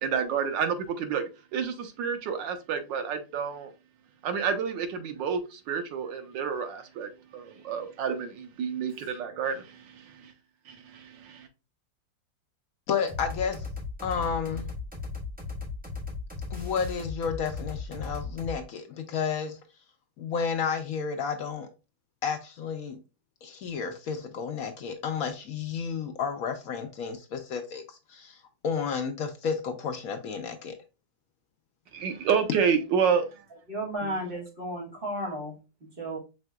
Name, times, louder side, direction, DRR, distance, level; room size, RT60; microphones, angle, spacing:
voice 1, 0.0-3.7 4.2-10.3 10.7-11.5 31.9-33.4 34.0-34.1, right 6 dB, 90° right, 1.4 m, -29 dB
voice 2, 12.9-13.7 14.0-14.7 16.5-19.6 20.2-21.7 22.2-23.0 23.4-27.8 28.1-28.4 28.6-30.7, left 6 dB, 70° left, 0.8 m, -31 dB
sound 1, 13.1-18.6, left 4 dB, 5° right, 1.3 m, -37 dB
voice 3, 33.7-35.6 36.0-36.2, right 1 dB, 30° right, 1.6 m, -33 dB
4.9 x 3.6 x 2.2 m
omnidirectional pair, 2.0 m